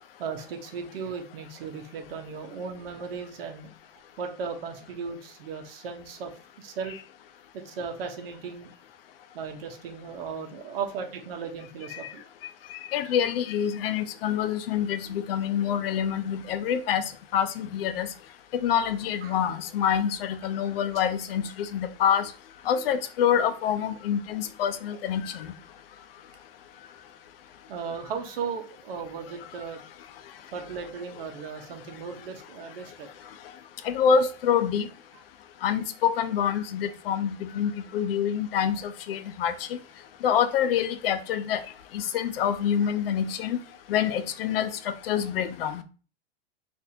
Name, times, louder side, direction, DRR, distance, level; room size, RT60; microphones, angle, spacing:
voice 1, 0.2-3.7 4.2-7.0 7.5-8.7 9.3-12.2 19.2-19.4 27.7-29.8 30.5-33.1, right 5 dB, 75° right, 0.9 m, -36 dB
voice 2, 12.9-18.1 18.5-22.3 22.7-25.5 33.8-34.9 35.6-39.5 40.2-41.6 41.9-43.6 43.9-45.8, left 8 dB, 75° left, 0.6 m, -26 dB
4.2 x 2.6 x 2.7 m
supercardioid pair, 175°, 29 cm